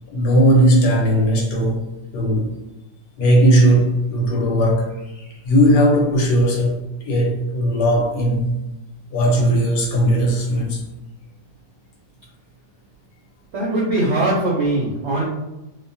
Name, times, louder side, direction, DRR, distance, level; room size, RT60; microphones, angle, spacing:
voice 1, 0.1-1.8 2.1-2.6 3.2-8.5 9.1-10.8, equal, 70° left, 1.3 m, -17 dB
voice 2, 13.5-15.2, right 2 dB, 70° right, 0.6 m, -20 dB
3.0 x 2.1 x 2.6 m
omnidirectional pair, 1.9 m